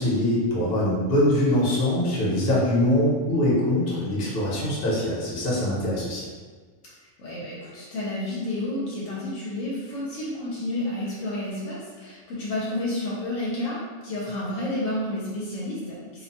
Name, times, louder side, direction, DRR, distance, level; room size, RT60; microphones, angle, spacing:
voice 1, 0.0-6.2, left 1 dB, 50° left, -6 dB, 0.9 m, -23 dB
voice 2, 7.2-13.8 14.0-16.2, left 1 dB, 75° left, -6 dB, 0.9 m, -30 dB
2.5 x 2.1 x 2.7 m, 1.5 s
omnidirectional pair, 1.3 m